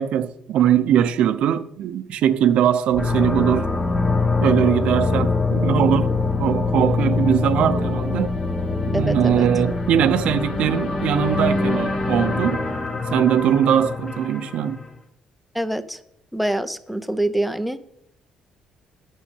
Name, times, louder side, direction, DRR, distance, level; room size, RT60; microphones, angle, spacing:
voice 1, 0.0-3.7 4.4-6.1 6.4-8.3 8.9-12.6 13.1-14.8, right 9 dB, 65° right, 0.7 m, -21 dB
sound 1, 2.9-14.9, left 3 dB, 25° left, 1.3 m, -23 dB
voice 2, 8.9-9.5 15.5-16.0 16.3-18.0, right 1 dB, ahead, 0.7 m, -25 dB
10.0 x 6.5 x 8.2 m
cardioid pair, 135°, 2 cm